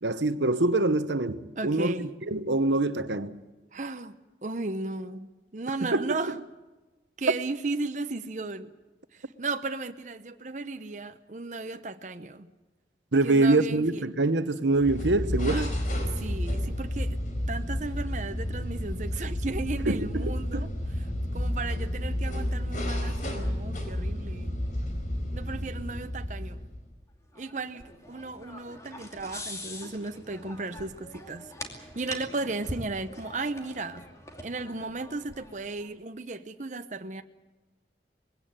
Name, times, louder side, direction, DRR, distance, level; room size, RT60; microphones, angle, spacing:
voice 1, 0.0-1.9 2.3-3.4 5.8-6.0 13.1-15.7 19.9-20.7, right 2 dB, 85° right, 1.1 m, -25 dB
voice 2, 1.6-2.1 3.7-4.1 4.4-6.4 7.2-8.7 9.1-12.5 13.2-14.0 15.5-15.7 16.1-17.2 17.5-20.7 21.0-21.1 21.3-24.6 25.3-26.6 27.4-34.1 34.4-37.2, right 3 dB, 45° right, 0.8 m, -35 dB
sound 1, 14.7-26.9, left 1 dB, 45° left, 4.4 m, -31 dB
sound 2, 27.3-35.9, left 1 dB, 15° left, 2.5 m, -43 dB
21.5 x 17.0 x 8.9 m
head